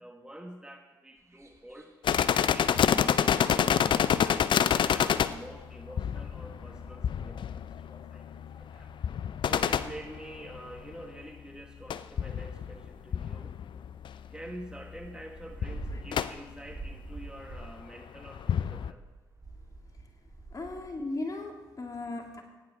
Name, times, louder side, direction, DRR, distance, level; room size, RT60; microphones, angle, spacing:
voice 1, 0.0-1.9 2.5-9.2 9.5-13.5 14.3-19.1, right 1 dB, 10° right, 3 dB, 1.5 m, -47 dB
sound 1, 1.2-2.8 3.1-9.0 9.4-11.0 11.7-14.1 14.4-14.5 14.7-18.0 18.2-21.0, right 3 dB, 30° right, 2.4 m, -49 dB
sound 2, 2.0-10.9 11.9-14.3 14.5-14.6 14.9-15.2 15.6-16.3 17.4-17.6 18.3-18.9, left 8 dB, 55° left, 0.5 m, -28 dB
voice 2, 20.5-22.4, left 2 dB, 40° left, 2 dB, 2.3 m, -36 dB
16.5 x 9.5 x 3.6 m, 1.2 s
hypercardioid pair, 40°, 10 cm